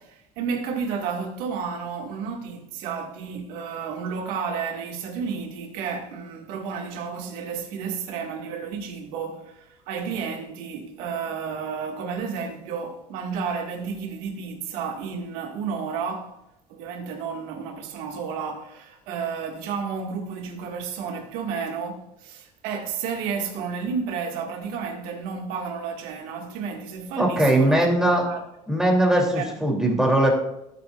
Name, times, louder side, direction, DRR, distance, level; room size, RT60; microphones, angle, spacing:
voice 1, 0.0-16.3 16.7-28.4 29.4-29.5, right 6 dB, 80° right, 2.1 m, -32 dB
voice 2, 27.2-28.2 28.7-30.3, right 1 dB, 5° right, 3.1 m, -20 dB
17.0 x 9.2 x 2.5 m
cardioid pair, 125°, 14 cm